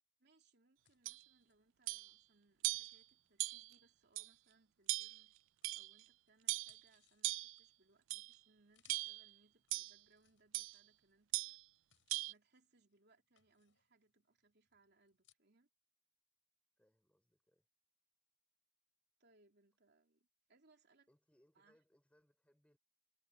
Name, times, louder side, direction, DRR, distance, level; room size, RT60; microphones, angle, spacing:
voice 1, 0.2-11.6 12.3-15.7 19.2-21.1 21.5-21.8, right 3 dB, 55° right, 3.4 m, -73 dB
sound 1, 0.8-5.1 5.6-15.3, left 11 dB, 70° left, 6.9 m, -77 dB
sound 2, 1.1-1.2 1.9-2.1 2.6-3.0 3.4-3.7 4.2-4.3 4.9-5.2 5.6-6.0 6.5-6.8 7.2-7.6 8.1-8.4 8.9-9.3 9.7-10.0 10.5-10.8 11.3-11.6 12.1-12.3, right 19 dB, 80° right, 0.3 m, -40 dB
voice 2, 16.8-17.7 21.1-22.8, equal, 5° left, 5.4 m, -75 dB
head